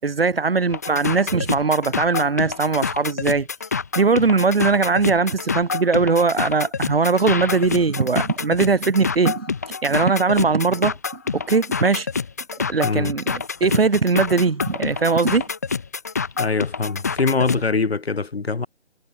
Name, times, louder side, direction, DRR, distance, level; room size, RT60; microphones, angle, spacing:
voice 1, 0.0-3.5 4.0-9.5 9.8-12.1 12.6-15.5, right 4 dB, 50° right, 7.0 m, -20 dB
sound 1, 0.7-17.6, left 5 dB, 15° left, 1.3 m, -27 dB
voice 2, 16.4-18.7, left 4 dB, 55° left, 6.1 m, -23 dB
hypercardioid pair, 175°, 36 cm